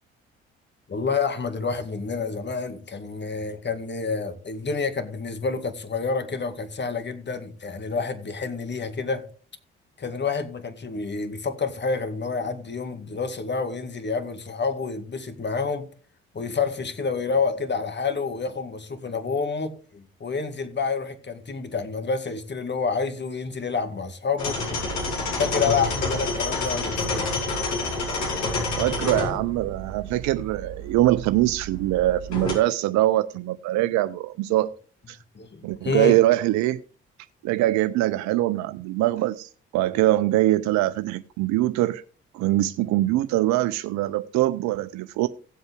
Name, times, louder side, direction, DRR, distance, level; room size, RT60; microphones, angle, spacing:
voice 1, 0.9-9.3 10.0-15.9 16.3-24.8 25.4-27.3 35.3-36.2, left 5 dB, 35° left, 2.1 m, -28 dB
sound 1, 24.4-32.5, left 2 dB, 65° left, 5.1 m, -29 dB
voice 2, 28.8-34.7 35.1-35.2 35.6-36.8 37.4-42.0 42.3-45.3, right 15 dB, 65° right, 0.6 m, -23 dB
17.0 x 7.9 x 3.6 m
hypercardioid pair, 45°, 30 cm